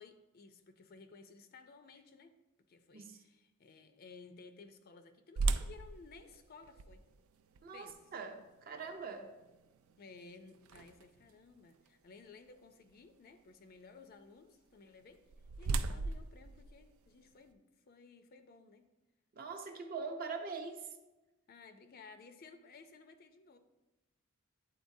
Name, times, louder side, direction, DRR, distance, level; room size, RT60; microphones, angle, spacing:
voice 1, 0.0-2.4 2.7-7.0 7.7-8.0 10.0-15.2 15.6-18.9 21.5-23.6, left 4 dB, 45° left, 8 dB, 0.4 m, -57 dB
sound 1, 5.4-11.3 11.9-12.0 12.6-12.8 14.9-17.5, right 3 dB, 90° right, 0.4 m, -39 dB
voice 2, 7.6-9.3 19.3-20.9, right 4 dB, 45° right, 5 dB, 0.6 m, -43 dB
9.3 x 3.9 x 2.6 m, 1.1 s
head